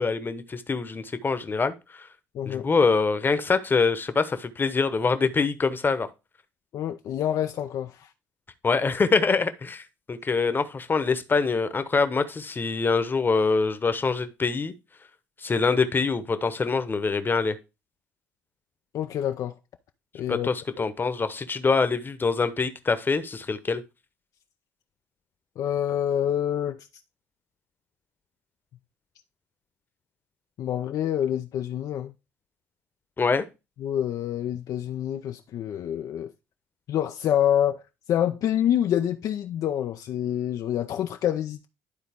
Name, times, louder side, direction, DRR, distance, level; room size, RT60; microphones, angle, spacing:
voice 1, 0.0-2.1 2.4-6.1 8.6-14.7 15.4-17.6 20.3-23.8 33.2-33.4, left 4 dB, 30° left, 1.1 m, -24 dB
voice 2, 2.3-2.7 6.7-8.1 18.9-19.5 20.1-20.5 25.6-26.9 30.6-32.1 33.8-36.3 36.9-37.8 38.1-41.7, left 10 dB, 55° left, 0.6 m, -27 dB
11.5 x 3.9 x 3.6 m
hypercardioid pair, 60°, 7 cm